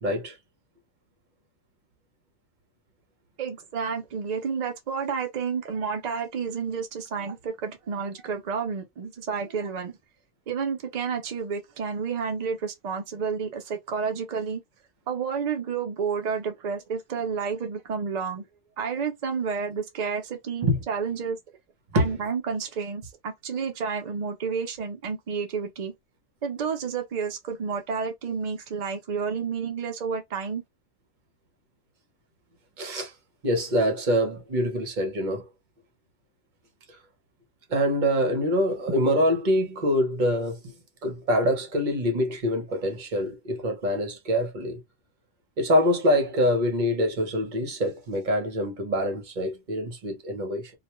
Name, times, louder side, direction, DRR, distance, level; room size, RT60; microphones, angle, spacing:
voice 1, 0.0-0.4 20.6-20.8 21.9-22.2 32.8-33.1 33.4-35.5 36.9-37.0 37.7-40.7 41.0-44.8 45.6-50.7, equal, 45° right, 0.8 m, -25 dB
voice 2, 3.4-10.0 10.5-14.6 15.1-18.4 18.8-21.4 21.9-25.9 26.4-30.6, right 6 dB, 75° right, 0.3 m, -30 dB
2.4 x 2.1 x 2.9 m
omnidirectional pair, 1.3 m